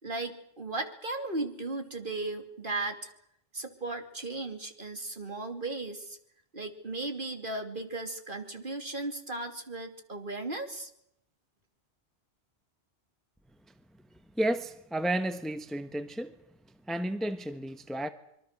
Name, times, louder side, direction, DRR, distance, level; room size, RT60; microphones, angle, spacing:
voice 1, 0.0-3.1 3.5-6.2 6.5-10.9, right 2 dB, 45° right, 3.0 m, -36 dB
voice 2, 14.4-16.3 16.9-18.1, right 1 dB, ahead, 1.1 m, -32 dB
26.0 x 24.0 x 6.7 m
omnidirectional pair, 1.2 m